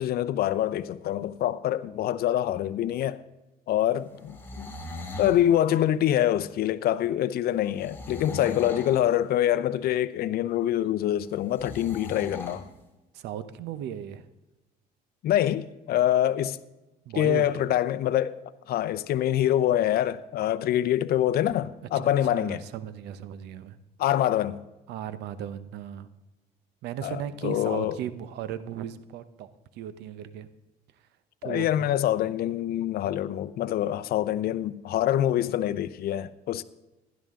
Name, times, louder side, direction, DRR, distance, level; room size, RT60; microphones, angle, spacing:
voice 1, 0.0-3.2 3.7-4.7 5.2-12.6 15.2-16.6 17.2-18.3 18.7-22.6 24.0-24.6 27.0-28.0 31.4-36.6, left 12 dB, 65° left, 0.7 m, -25 dB
sound 1, 4.2-5.4 7.8-9.0 11.5-12.6, left 2 dB, 15° left, 2.7 m, -39 dB
voice 2, 13.1-14.2 17.1-17.4 21.9-23.8 24.9-26.1 26.8-30.5 31.4-31.9, right 10 dB, 80° right, 0.9 m, -36 dB
16.0 x 11.5 x 3.7 m
cardioid pair, 110°, 17 cm